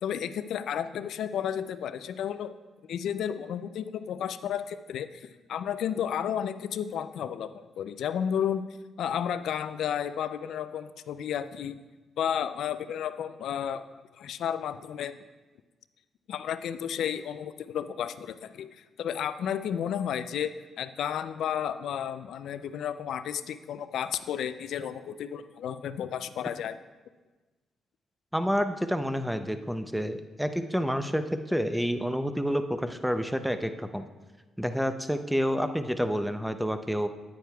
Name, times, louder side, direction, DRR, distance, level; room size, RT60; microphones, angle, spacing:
voice 1, 0.0-2.5 2.8-8.6 9.0-11.8 12.2-13.8 14.2-15.2 16.3-26.8, left 9 dB, 75° left, 12 dB, 0.3 m, -32 dB
voice 2, 28.3-34.0 34.6-37.1, equal, ahead, 9 dB, 0.5 m, -29 dB
9.3 x 9.1 x 2.3 m, 1.2 s
cardioid pair, 70°, 0 cm